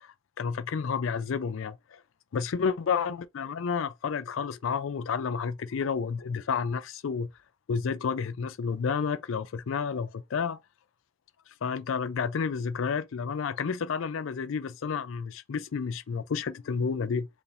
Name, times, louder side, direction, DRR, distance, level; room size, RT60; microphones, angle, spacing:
voice 1, 0.0-2.0 2.3-7.3 7.7-10.6 11.6-17.3, left 6 dB, 65° left, 0.4 m, -30 dB
4.8 x 2.5 x 3.3 m
head